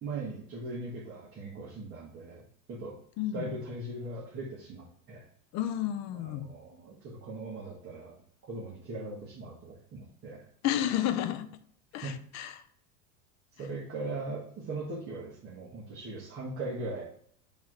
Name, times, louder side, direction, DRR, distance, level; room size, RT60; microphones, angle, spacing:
voice 1, 0.0-3.0 3.3-5.3 6.1-10.5 12.0-12.2 13.5-17.1, right 2 dB, 30° right, -5 dB, 1.4 m, -40 dB
voice 2, 3.2-3.6 5.5-6.5 10.6-11.5 11.9-12.7, left 11 dB, 35° left, 11 dB, 0.5 m, -31 dB
7.2 x 3.1 x 4.9 m, 0.65 s
supercardioid pair, 115°, 47 cm